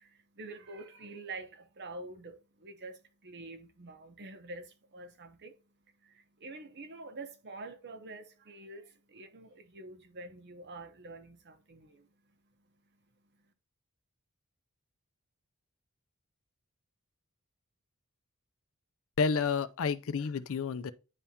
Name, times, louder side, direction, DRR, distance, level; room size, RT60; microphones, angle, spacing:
voice 1, 0.0-5.6 6.0-12.7 13.3-13.4, right 2 dB, 50° right, 0.9 m, -47 dB
voice 2, 19.2-20.9, left 5 dB, 65° left, 0.5 m, -30 dB
9.9 x 3.5 x 2.8 m
head